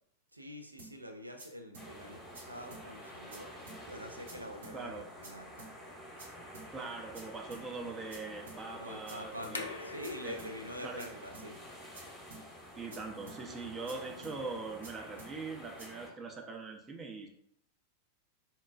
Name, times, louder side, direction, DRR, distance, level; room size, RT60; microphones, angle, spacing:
voice 1, 0.3-5.5 8.8-11.6, left 1 dB, 85° right, 5 dB, 0.4 m, -46 dB
sound 1, 0.8-0.9 1.4-1.5 1.7-1.9 2.3-2.4 2.7-2.8 3.3-3.4 3.7-3.8 4.3-4.4 4.6-4.8 5.2-5.3 5.6-5.7 6.2-6.3 6.5-6.7 7.1-7.2 7.5-7.6 8.1-8.2 8.5-8.6 9.1-9.2 9.4-9.6 10.0-10.1 10.4-10.5 11.0-11.1 11.3-11.5 11.9-12.0 12.3-12.4 12.9-13.0 13.3-13.4 13.9-14.0 14.2-14.4 14.8-14.9 15.2-15.3 15.8-15.9, right 3 dB, 70° right, 0.9 m, -50 dB
sound 2, 1.8-16.1, equal, 10° left, 0.9 m, -50 dB
voice 2, 4.7-5.1 6.7-9.7 10.2-10.4 10.8-11.1 12.8-17.3, right 4 dB, 20° right, 2 dB, 0.5 m, -42 dB
sound 3, 9.3-15.9, left 3 dB, 70° left, 0.3 m, -49 dB
4.1 x 2.2 x 2.4 m, 0.70 s
figure-of-eight pair, 90°, 0 cm